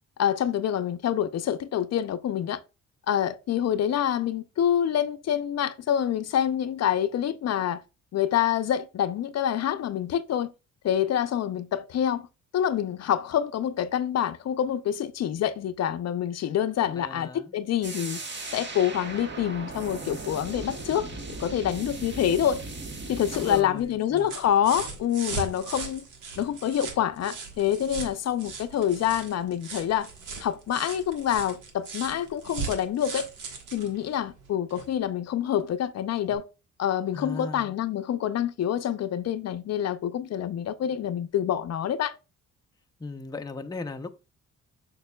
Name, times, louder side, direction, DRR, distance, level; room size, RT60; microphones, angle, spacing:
voice 1, 0.2-2.6 3.1-7.8 8.1-10.5 10.8-12.2 12.5-18.2 18.5-21.1 21.4-22.6 23.1-26.1 26.4-30.1 30.4-33.3 33.7-36.5 36.8-42.1, left 10 dB, 60° left, 0.6 m, -26 dB
voice 2, 16.9-17.5 23.3-24.3 37.1-37.7 43.0-44.1, left 3 dB, 15° left, 0.6 m, -37 dB
sound 1, 17.8-23.6, right 3 dB, 35° right, 1.3 m, -37 dB
sound 2, 22.9-35.0 36.3-36.4, right 5 dB, 90° right, 1.6 m, -39 dB
6.6 x 6.2 x 2.3 m
cardioid pair, 90°, 30 cm